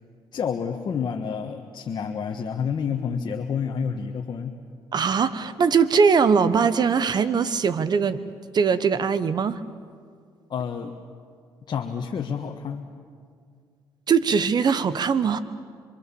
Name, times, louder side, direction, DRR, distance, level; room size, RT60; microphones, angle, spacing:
voice 1, 0.3-4.6 10.5-10.9 11.7-12.9, left 6 dB, 55° left, 2 dB, 1.4 m, -29 dB
voice 2, 4.9-8.2 8.5-9.6 14.1-15.4, right 6 dB, 50° right, 14 dB, 1.2 m, -21 dB
27.0 x 23.0 x 7.1 m, 2.1 s
cardioid pair, 85°, 9 cm